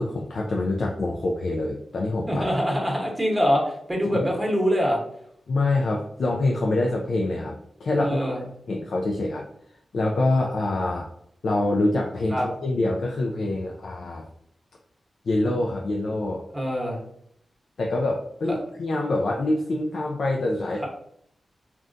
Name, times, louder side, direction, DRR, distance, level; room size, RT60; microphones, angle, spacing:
voice 1, 0.0-2.5 4.1-4.2 5.5-8.4 8.7-9.4 9.9-11.1 11.4-14.2 15.3-16.4 17.8-20.8, left 2 dB, 70° left, -1 dB, 0.3 m, -25 dB
voice 2, 2.3-5.0 8.0-8.4 12.3-12.5 16.5-17.0 18.4-18.5, equal, 10° right, -2 dB, 1.0 m, -24 dB
3.6 x 2.2 x 2.5 m, 0.71 s
wide cardioid pair, 80°, 0 cm